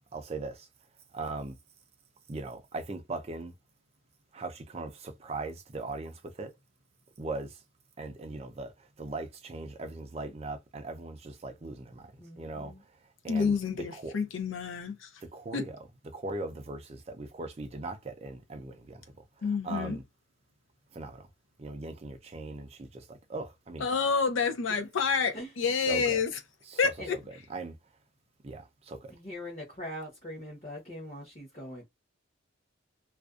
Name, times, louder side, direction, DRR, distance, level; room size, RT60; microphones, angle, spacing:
voice 1, 0.1-0.7 1.1-1.6 2.3-3.5 4.3-6.5 7.2-7.6 8.0-14.1 15.2-20.0 20.9-21.3 21.6-23.9 25.9-26.2 26.7-26.9 27.3-27.8 28.4-29.1, right 3 dB, 30° right, 0.4 m, -40 dB
voice 2, 12.2-12.8 25.3-25.5 27.0-27.1 29.1-31.8, left 1 dB, 30° left, 0.8 m, -42 dB
voice 3, 13.3-15.1 15.5-15.6 19.4-20.0 23.8-26.3 26.8-27.2, left 5 dB, 65° left, 0.5 m, -28 dB
2.4 x 2.1 x 2.3 m
head